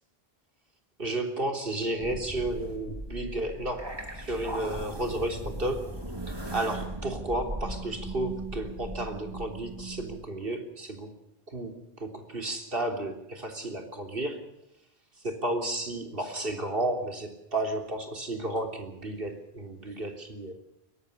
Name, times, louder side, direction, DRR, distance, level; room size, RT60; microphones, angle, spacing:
voice 1, 1.0-6.0 6.3-11.1 11.5-14.4 15.2-20.5, right 1 dB, 60° right, 4 dB, 3.7 m, -32 dB
sound 1, 2.0-10.2, right 1 dB, 25° right, 2.8 m, -38 dB
22.0 x 19.0 x 6.8 m, 0.84 s
omnidirectional pair, 1.0 m